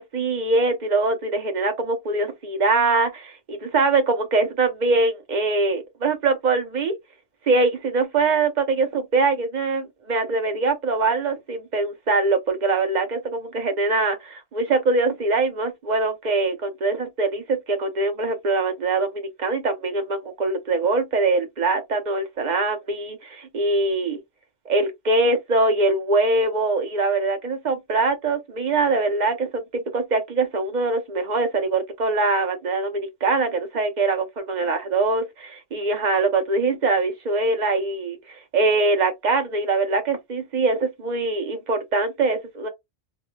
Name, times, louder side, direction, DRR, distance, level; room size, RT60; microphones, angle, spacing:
voice 1, 0.0-6.9 7.5-24.2 24.7-42.7, right 3 dB, 45° right, 0.7 m, -23 dB
3.0 x 2.0 x 3.1 m
omnidirectional pair, 1.3 m